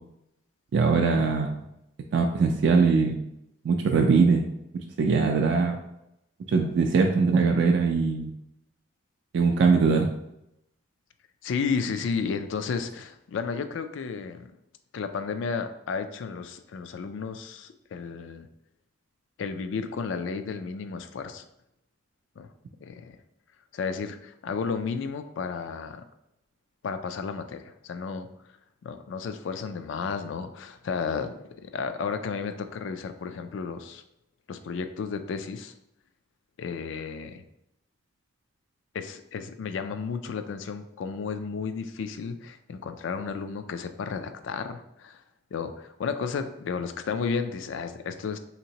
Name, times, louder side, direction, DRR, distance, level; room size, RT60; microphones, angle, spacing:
voice 1, 0.7-1.6 2.1-3.2 3.6-4.5 5.0-5.8 6.5-8.3 9.3-10.1, right 4 dB, 60° right, 3 dB, 0.3 m, -21 dB
voice 2, 11.4-14.5 14.9-18.5 19.4-21.4 22.4-22.5 22.8-23.2 23.7-26.0 26.8-28.3 28.8-34.0 34.5-35.7 36.6-37.4 38.9-45.2 45.5-48.4, left 5 dB, 70° left, 9 dB, 0.3 m, -33 dB
3.4 x 2.9 x 2.8 m, 0.82 s
head